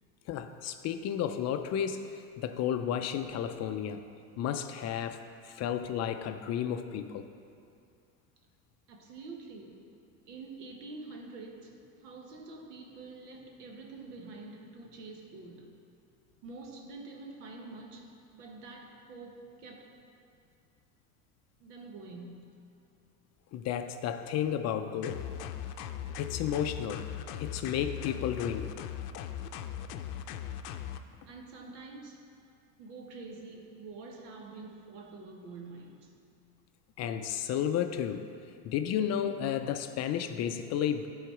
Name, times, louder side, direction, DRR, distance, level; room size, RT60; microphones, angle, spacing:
voice 1, 0.3-4.1 4.4-7.3 23.5-25.3 26.2-27.1 27.4-28.7 37.0-38.3 38.6-41.1, left 9 dB, 40° left, 8 dB, 0.4 m, -32 dB
voice 2, 8.9-9.9 10.3-15.8 16.4-20.0 21.6-22.6 31.3-32.3 32.8-36.2, right 3 dB, 85° right, 1 dB, 1.3 m, -47 dB
sound 1, 25.0-31.0, left 9 dB, 85° left, 0.6 m, -39 dB
11.5 x 4.0 x 4.7 m, 2.4 s
supercardioid pair, 100°, 45 cm